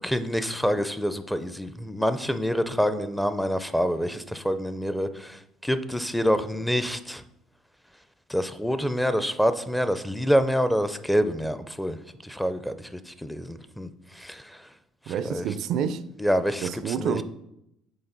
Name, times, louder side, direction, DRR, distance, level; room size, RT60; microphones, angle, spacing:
voice 1, 0.0-7.2 8.3-12.0 12.2-13.9 14.2-14.4 15.3-15.5 16.2-17.2, equal, 5° left, 0.5 m, -26 dB
voice 2, 15.1-16.0 16.6-17.2, right 8 dB, 65° right, 0.4 m, -28 dB
6.9 x 4.2 x 3.9 m
supercardioid pair, 85°, 0 cm